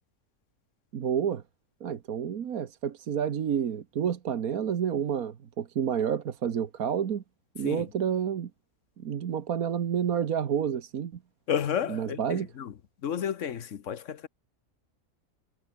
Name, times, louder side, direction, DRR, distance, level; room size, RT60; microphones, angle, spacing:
voice 1, 0.9-1.4 1.8-7.2 7.5-8.5 9.0-11.1 11.9-12.5, right 8 dB, 75° right, 1.6 m, -29 dB
voice 2, 11.5-12.7 13.0-14.3, left 8 dB, 60° left, 1.3 m, -31 dB
omnidirectional pair, 1.5 m